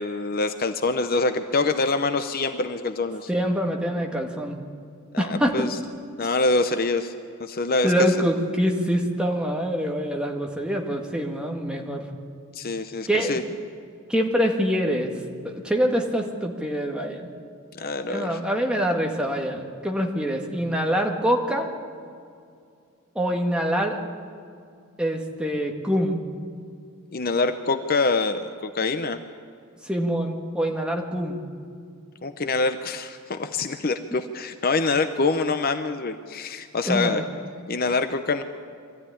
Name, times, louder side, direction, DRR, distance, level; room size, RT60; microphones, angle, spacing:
voice 1, 0.0-3.3 5.1-5.7 6.2-7.1 7.4-7.9 12.5-13.4 17.7-18.4 27.1-29.2 32.2-37.2 37.7-38.4, left 3 dB, 40° left, 9 dB, 0.7 m, -25 dB
voice 2, 3.3-4.6 5.2-5.7 7.8-12.1 13.1-13.4 14.1-15.1 15.4-17.3 18.1-21.7 23.2-24.0 25.0-26.2 29.8-31.4 36.8-37.3, equal, 5° right, 1 dB, 1.8 m, -25 dB
24.0 x 14.5 x 9.9 m, 2.4 s
head